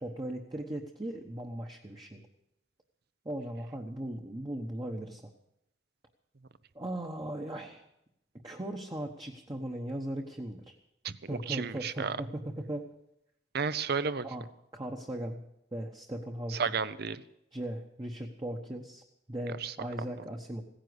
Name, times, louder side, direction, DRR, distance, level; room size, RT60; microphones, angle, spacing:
voice 1, 0.0-2.2 3.2-5.3 6.7-7.9 8.4-10.7 11.3-12.9 14.2-14.5 14.7-15.4 15.7-16.7 17.5-20.6, right 1 dB, 25° right, 2 dB, 1.1 m, -38 dB
voice 2, 11.5-12.2 13.5-14.2 16.5-17.2 19.6-19.7, right 5 dB, 60° right, 15 dB, 0.7 m, -32 dB
16.0 x 10.0 x 8.0 m, 0.83 s
head